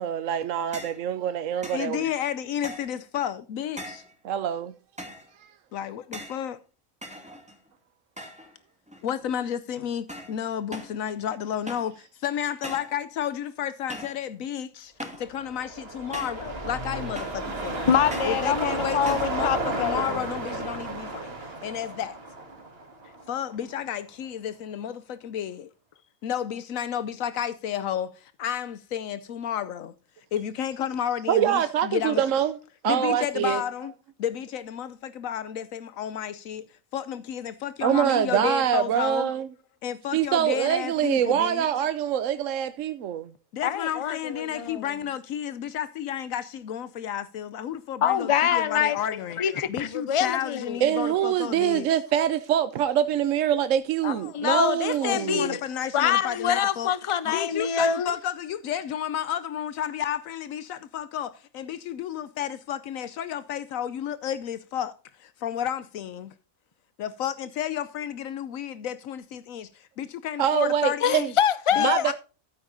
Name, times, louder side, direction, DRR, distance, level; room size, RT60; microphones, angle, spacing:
voice 1, 0.0-2.1 4.2-4.7 5.4-5.5 31.3-32.6 32.8-33.6 37.8-39.5 40.1-43.3 50.8-55.6 70.4-71.3 71.8-72.1, right 9 dB, 70° right, 1.0 m, -24 dB
sound 1, 0.7-1.0 1.6-1.9 2.6-3.0 3.8-4.1 5.0-5.3 6.1-6.4 7.0-7.7 8.2-8.6 8.9-9.3 10.1-10.4 10.7-11.0 11.7-12.0 12.6-13.0 13.9-14.2 15.0-15.3 16.1-16.5 17.2-17.5 18.1-18.4 19.1-19.4, equal, 5° right, 2.3 m, -40 dB
voice 2, 1.7-4.0 5.7-6.6 9.0-17.9 18.2-21.3 21.6-22.2 23.3-25.7 26.2-29.9 30.3-32.2 32.8-33.9 34.2-36.6 36.9-39.3 39.8-41.7 43.5-49.4 49.7-51.9 55.1-56.9 57.3-64.9 65.2-66.3 67.0-71.3 71.7-72.1, left 9 dB, 80° left, 1.1 m, -32 dB
sound 2, 15.3-23.7 24.1-24.2, right 2 dB, 45° right, 2.2 m, -32 dB
voice 3, 17.9-20.2 43.6-44.9 48.0-49.0 49.4-50.8 54.0-55.6 55.9-58.1 71.0-72.1, left 8 dB, 35° left, 0.5 m, -25 dB
12.5 x 9.6 x 2.6 m
omnidirectional pair, 1.4 m